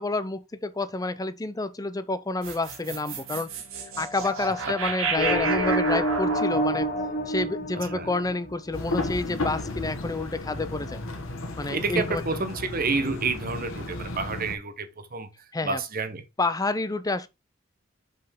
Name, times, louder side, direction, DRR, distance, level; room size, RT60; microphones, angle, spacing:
voice 1, 0.0-3.5 4.0-6.9 7.3-11.0 11.6-12.2 15.5-15.8 16.4-17.3, left 2 dB, 20° left, 0.6 m, -29 dB
sound 1, 2.4-8.7, right 3 dB, 85° right, 1.6 m, -32 dB
sound 2, 5.2-8.7, equal, 50° left, 1.4 m, -28 dB
sound 3, 8.7-14.6, left 2 dB, 75° left, 1.4 m, -33 dB
voice 2, 11.7-15.3 15.6-16.2, right 4 dB, 45° right, 1.1 m, -29 dB
5.5 x 5.5 x 3.7 m
head